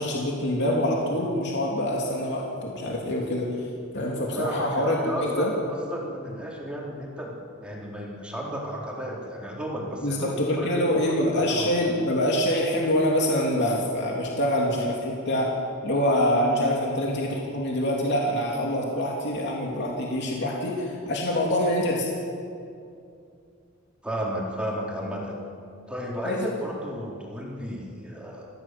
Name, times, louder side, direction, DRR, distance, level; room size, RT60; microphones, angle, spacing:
voice 1, 0.0-3.7 3.9-5.5 10.0-15.6 15.8-22.1 26.2-26.4, left 1 dB, 55° left, -2 dB, 3.0 m, -25 dB
voice 2, 4.3-11.6 24.0-25.4 25.9-28.5, equal, 5° right, -3 dB, 3.7 m, -33 dB
28.5 x 15.5 x 7.6 m, 2.5 s
head